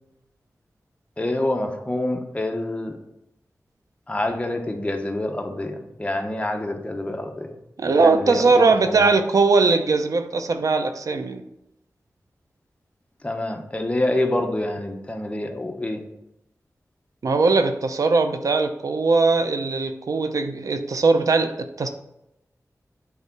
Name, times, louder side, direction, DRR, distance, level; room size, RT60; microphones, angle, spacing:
voice 1, 1.2-2.9 4.1-7.5 8.0-9.0 13.2-16.1, left 1 dB, 20° left, 1.0 m, -27 dB
voice 2, 7.8-11.4 17.2-21.9, right 3 dB, 80° right, 0.6 m, -20 dB
8.3 x 3.6 x 4.6 m
wide cardioid pair, 75°, 6 cm